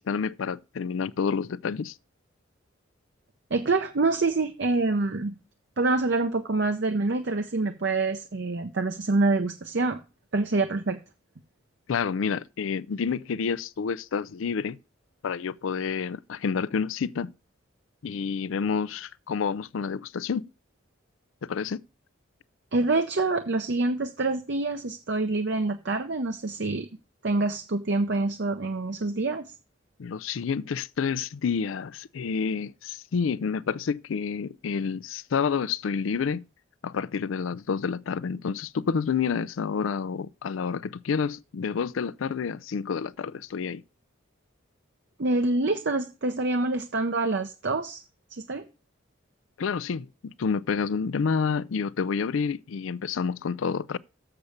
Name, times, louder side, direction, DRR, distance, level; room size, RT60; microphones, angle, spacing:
voice 1, 0.0-1.9 11.9-14.8 15.2-17.3 18.0-20.4 21.4-21.8 30.0-36.4 36.8-43.8 49.6-54.0, left 6 dB, 80° left, 0.4 m, -29 dB
voice 2, 3.5-5.3 5.8-10.0 10.3-11.0 22.7-26.9 27.2-29.4 45.2-48.0 48.3-48.7, right 3 dB, 60° right, 0.7 m, -26 dB
7.1 x 6.8 x 6.5 m
head